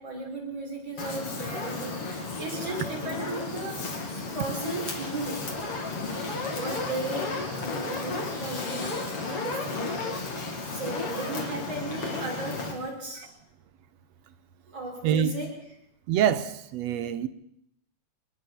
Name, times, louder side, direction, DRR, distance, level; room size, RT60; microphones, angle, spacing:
voice 1, 0.0-3.9 4.3-5.5 6.5-9.0 9.4-10.1 10.7-13.3 14.7-15.5, right 2 dB, 50° right, 8.0 m, -36 dB
Fire, 1.0-12.7, left 3 dB, 45° left, 3.9 m, -33 dB
voice 2, 16.1-17.3, right 9 dB, 65° right, 1.9 m, -25 dB
28.5 x 20.5 x 4.6 m
omnidirectional pair, 3.6 m